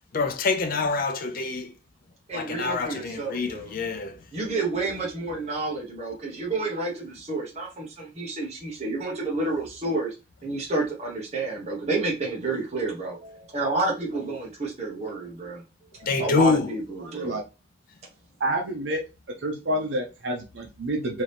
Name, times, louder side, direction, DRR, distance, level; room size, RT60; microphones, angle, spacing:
voice 1, 0.1-1.7 2.3-4.2 16.0-16.7, left 4 dB, 50° left, 0.5 m, -26 dB
voice 2, 2.3-3.7 4.3-10.1 10.4-15.6 16.0-17.4, right 2 dB, 35° right, 1.1 m, -30 dB
voice 3, 18.4-19.0 19.4-21.2, right 1 dB, 75° right, 0.7 m, -28 dB
3.6 x 2.8 x 3.3 m
head